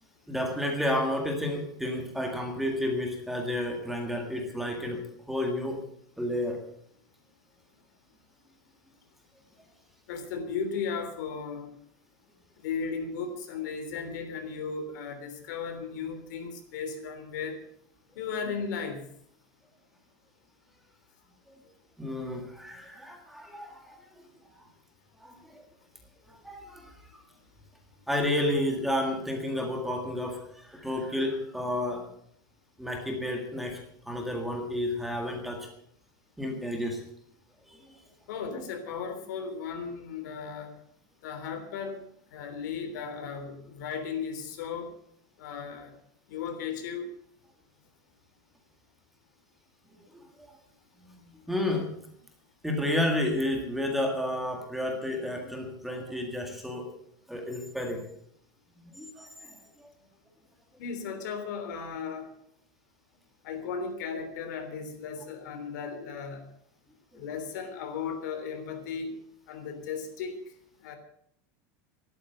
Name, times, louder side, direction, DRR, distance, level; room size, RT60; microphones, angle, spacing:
voice 1, 0.3-5.8 6.2-6.6 22.0-24.0 25.2-25.6 26.3-27.2 28.1-32.1 32.8-33.8 34.1-35.7 36.4-37.0 37.7-38.0 50.1-50.2 51.0-51.2 51.5-51.9 52.6-56.9 57.3-58.0 58.9-59.9 67.1-67.2, left 1 dB, ahead, 2 dB, 1.8 m, -31 dB
voice 2, 10.1-11.7 12.6-17.6 18.1-19.1 38.3-40.8 41.2-42.0 42.3-44.9 45.4-45.9 46.3-47.1 60.8-62.3 63.4-66.5 67.1-69.2 69.5-70.4 70.8-71.0, left 6 dB, 75° left, 7 dB, 3.4 m, -35 dB
13.0 x 11.5 x 6.8 m, 0.67 s
supercardioid pair, 180°, 10 cm